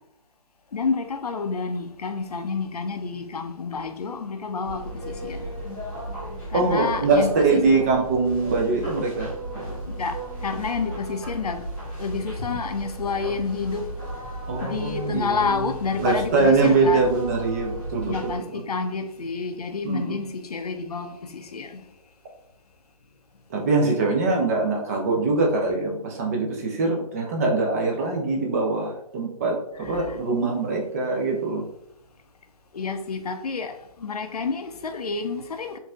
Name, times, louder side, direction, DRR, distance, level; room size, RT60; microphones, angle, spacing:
voice 1, 0.7-5.5 6.5-7.6 9.9-10.2 10.4-11.6 12.0-13.8 14.6-17.2 17.9-21.8 29.8-30.2 32.7-33.7 34.0-35.8, left 4 dB, 85° left, 0.5 m, -29 dB
sound 1, 4.6-18.4, right 1 dB, 10° left, 1.3 m, -35 dB
voice 2, 6.5-9.3 14.5-15.6 16.0-18.6 19.8-20.2 23.5-31.6, right 3 dB, 25° right, 0.5 m, -23 dB
3.9 x 2.7 x 2.3 m
hypercardioid pair, 155°, 19 cm